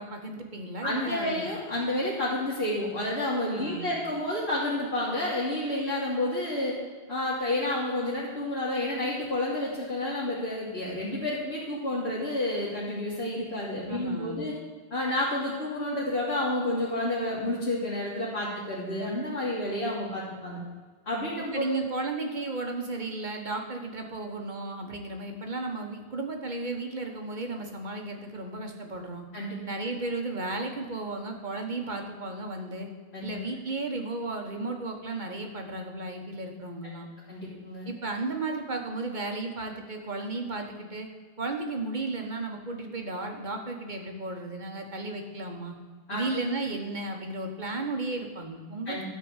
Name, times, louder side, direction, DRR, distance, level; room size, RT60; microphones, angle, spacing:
voice 1, 0.0-1.5 3.5-4.0 13.9-14.5 21.5-29.3 29.6-32.9 33.2-37.1 37.8-41.1 41.4-45.7 46.1-49.0, right 2 dB, 45° right, 3 dB, 1.4 m, -34 dB
voice 2, 0.8-6.8 7.1-14.5 14.9-20.6 21.1-21.8 29.3-29.6 33.1-33.3 37.3-37.9 46.1-46.2 48.9-49.0, left 1 dB, 80° left, -9 dB, 2.9 m, -30 dB
13.0 x 4.5 x 8.0 m, 1.5 s
omnidirectional pair, 1.1 m